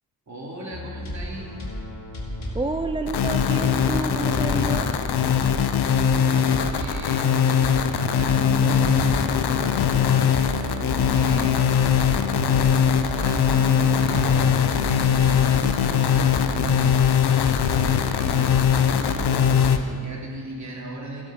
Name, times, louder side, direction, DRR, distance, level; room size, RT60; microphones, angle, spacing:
voice 1, 0.3-1.5 6.0-9.5 10.7-12.4 13.1-19.1 19.7-21.3, right 1 dB, 45° right, -3 dB, 3.1 m, -37 dB
sound 1, 0.7-7.3 7.6-7.9 8.1-19.7, left 1 dB, 45° left, 3.1 m, -33 dB
voice 2, 2.5-4.9, right 2 dB, 15° right, 7 dB, 0.4 m, -29 dB
sound 2, 3.1-19.8, left 7 dB, 80° left, 0.8 m, -21 dB
sound 3, 8.3-16.5, left 8 dB, 70° right, 3.3 m, -36 dB
15.0 x 8.7 x 6.4 m, 2.3 s
cardioid pair, 90°, 39 cm